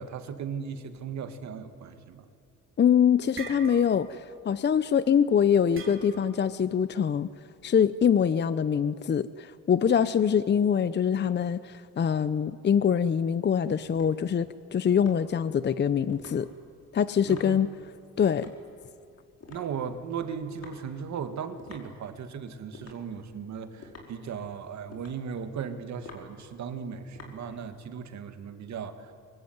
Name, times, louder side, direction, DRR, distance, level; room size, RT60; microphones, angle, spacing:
voice 1, 0.0-2.2 17.3-17.6 19.5-29.1, right 7 dB, 65° right, 8 dB, 2.1 m, -37 dB
sound 1, 2.5-2.8 3.1-4.2 4.5-4.7 5.7-6.4, right 5 dB, 45° right, 3.8 m, -42 dB
voice 2, 2.8-7.3 7.6-16.5 16.9-17.7 18.2-18.5, left 8 dB, 35° left, 15 dB, 0.6 m, -24 dB
sound 2, 12.4-28.0, left 3 dB, 55° left, 5.2 m, -51 dB
23.5 x 22.0 x 9.5 m, 2.3 s
cardioid pair, 90°, 30 cm